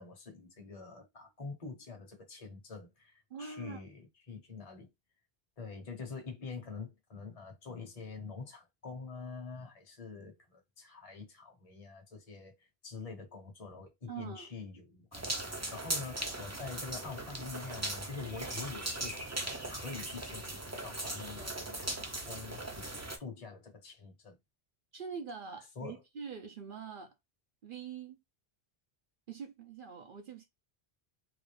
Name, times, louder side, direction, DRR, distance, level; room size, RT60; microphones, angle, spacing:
voice 1, 0.0-4.9 5.6-12.5 12.8-22.6 23.2-24.4 25.8-26.0, left 4 dB, 35° left, 1.0 m, -46 dB
voice 2, 3.3-3.8 14.1-14.5 24.9-27.1 27.6-28.2 29.3-30.5, right 6 dB, 60° right, 0.8 m, -44 dB
sound 1, 15.1-23.2, right 2 dB, 20° right, 0.5 m, -39 dB
3.9 x 2.4 x 3.3 m
omnidirectional pair, 1.1 m